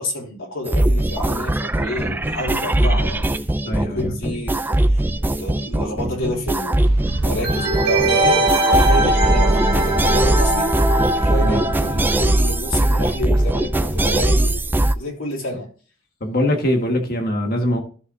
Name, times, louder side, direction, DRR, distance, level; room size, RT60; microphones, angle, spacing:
voice 1, 0.0-3.2 3.6-5.1 5.4-6.9 7.2-10.7 11.1-14.6 14.9-15.7, left 1 dB, 85° left, -2 dB, 3.1 m, -29 dB
sound 1, 0.7-15.0, right 1 dB, 10° right, 0.3 m, -20 dB
voice 2, 3.7-4.1 9.5-9.7 11.4-11.6 16.2-17.8, left 1 dB, 45° left, 4 dB, 1.5 m, -22 dB
sound 2, 6.8-8.5, right 2 dB, 75° right, 0.8 m, -31 dB
sound 3, 7.4-12.9 13.2-13.3, right 2 dB, 55° right, 2.3 m, -21 dB
13.0 x 6.5 x 2.7 m, 0.40 s
head